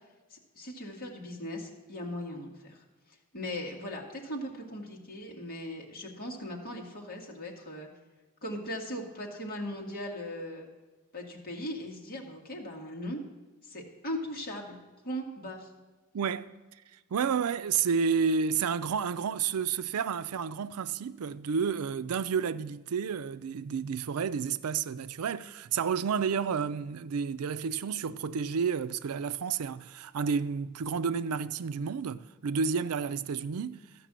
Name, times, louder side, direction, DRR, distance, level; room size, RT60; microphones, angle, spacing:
voice 1, 0.3-2.8 3.3-7.9 8.4-10.7 11.1-13.2 13.6-14.8 15.0-15.7, equal, 45° left, 2.0 m, -39 dB
voice 2, 16.1-16.5 17.1-33.8, right 6 dB, 90° right, 0.4 m, -30 dB
13.5 x 5.9 x 7.4 m
head